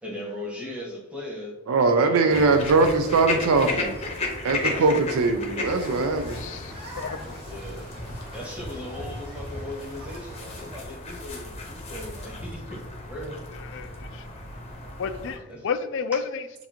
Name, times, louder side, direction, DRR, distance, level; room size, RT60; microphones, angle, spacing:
voice 1, 0.0-1.5 2.2-2.7 4.5-4.9 7.4-7.9 8.3-13.4 15.5-15.7 16.1-16.2, left 1 dB, 5° right, 1.0 m, -38 dB
voice 2, 1.7-4.0 4.4-6.4, right 3 dB, 70° right, 0.4 m, -21 dB
sound 1, 2.3-15.4, left 2 dB, 25° left, 0.7 m, -35 dB
sound 2, 5.6-10.7, equal, 25° right, 1.5 m, -45 dB
voice 3, 6.3-7.4 13.6-14.3 15.0-16.7, left 5 dB, 55° left, 0.4 m, -32 dB
7.0 x 2.6 x 2.8 m
head